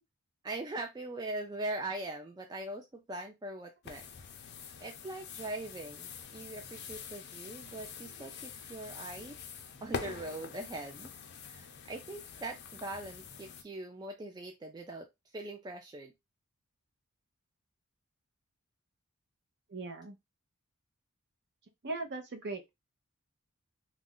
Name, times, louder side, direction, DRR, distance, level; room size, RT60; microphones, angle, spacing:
voice 1, 0.4-4.0 4.8-9.4 9.8-11.1 11.4-15.1 15.3-16.1, right 2 dB, 20° right, 0.3 m, -41 dB
sound 1, 3.8-13.6, left 6 dB, 50° left, 0.5 m, -45 dB
voice 2, 19.7-20.2 21.8-22.7, right 3 dB, 50° right, 0.6 m, -39 dB
2.4 x 2.1 x 3.6 m
head